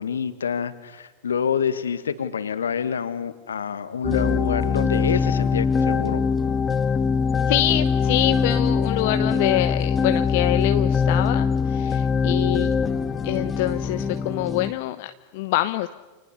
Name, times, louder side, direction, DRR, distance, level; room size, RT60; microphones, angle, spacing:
voice 1, 0.0-6.6 12.1-12.5, left 7 dB, 70° left, 12 dB, 1.9 m, -27 dB
sound 1, 4.0-14.7, left 5 dB, 15° left, 1.9 m, -22 dB
voice 2, 7.5-12.8 13.2-15.9, left 16 dB, 50° left, 10 dB, 0.9 m, -25 dB
29.5 x 29.5 x 6.9 m, 1.2 s
figure-of-eight pair, 90°, 0 cm